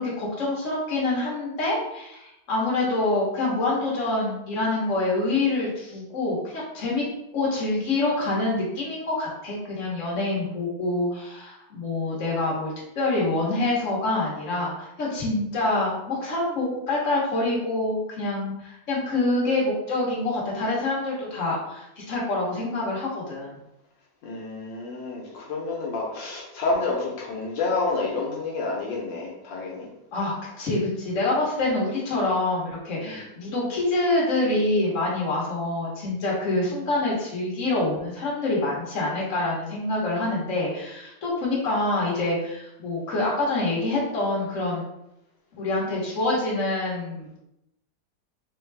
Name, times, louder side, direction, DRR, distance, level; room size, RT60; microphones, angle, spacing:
voice 1, 0.0-7.0 7.3-23.5 30.1-44.8 45.6-47.4, left 2 dB, 45° left, -5 dB, 1.5 m, -26 dB
voice 2, 24.2-29.9 33.0-33.2, left 3 dB, 80° left, -3 dB, 1.5 m, -29 dB
4.4 x 2.3 x 3.3 m, 0.85 s
omnidirectional pair, 2.0 m